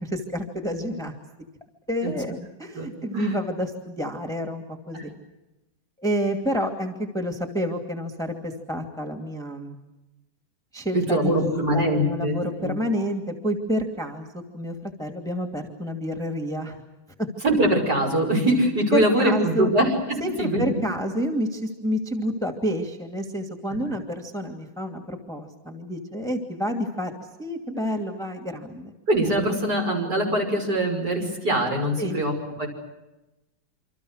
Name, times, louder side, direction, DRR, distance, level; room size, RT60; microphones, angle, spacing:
voice 1, 0.0-1.1 1.9-5.1 6.0-9.8 10.7-16.8 17.2-17.3 18.9-19.7 20.2-27.1 27.4-28.9 32.0-32.2, equal, ahead, 3 dB, 2.3 m, -29 dB
voice 2, 2.7-3.4 4.9-5.0 11.1-12.7 17.4-19.9 20.4-20.8 29.1-32.3 32.6-32.7, right 1 dB, 50° right, 2 dB, 6.7 m, -23 dB
27.5 x 26.0 x 6.5 m, 1.0 s
omnidirectional pair, 2.2 m